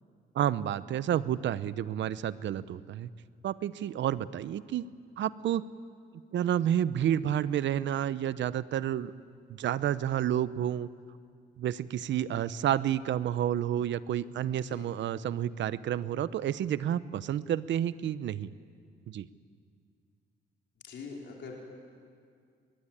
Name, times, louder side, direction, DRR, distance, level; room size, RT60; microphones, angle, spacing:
voice 1, 0.3-3.1 3.4-4.9 5.2-5.6 6.3-9.1 9.5-10.9 11.6-18.5 19.1-19.3, right 10 dB, 70° right, 16 dB, 0.8 m, -30 dB
voice 2, 20.8-21.5, left 5 dB, 65° left, -1 dB, 4.2 m, -43 dB
23.5 x 21.0 x 8.8 m, 2.2 s
cardioid pair, 90°, 20 cm